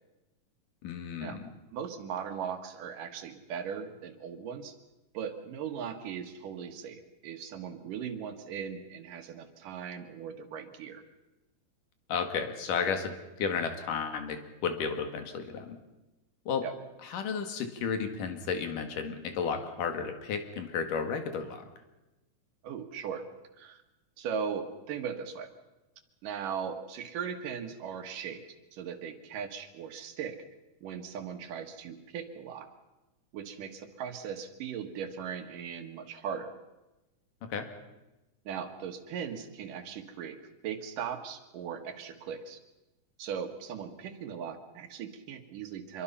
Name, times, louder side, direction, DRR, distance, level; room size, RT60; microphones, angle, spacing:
voice 1, 0.8-1.5 12.1-15.8 16.5-16.7 17.0-21.6 37.5-37.7, left 6 dB, 85° left, 6 dB, 3.5 m, -33 dB
voice 2, 1.7-4.7 5.1-11.0 16.6-16.7 22.6-23.3 23.6-23.8 24.2-25.5 26.2-28.4 28.7-30.4 30.8-32.7 33.3-36.5 38.5-40.4 40.6-42.6 43.2-46.0, right 7 dB, 90° right, 6 dB, 3.2 m, -38 dB
25.5 x 22.5 x 5.7 m, 1.0 s
omnidirectional pair, 3.7 m